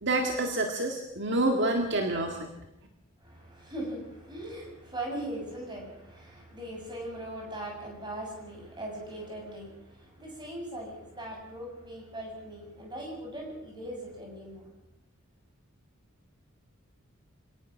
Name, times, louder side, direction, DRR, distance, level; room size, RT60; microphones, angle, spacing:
voice 1, 0.0-2.5, right 2 dB, 55° right, 3 dB, 2.0 m, -28 dB
voice 2, 3.2-14.7, right 1 dB, 20° right, 0 dB, 7.3 m, -40 dB
26.0 x 18.0 x 6.3 m, 0.90 s
head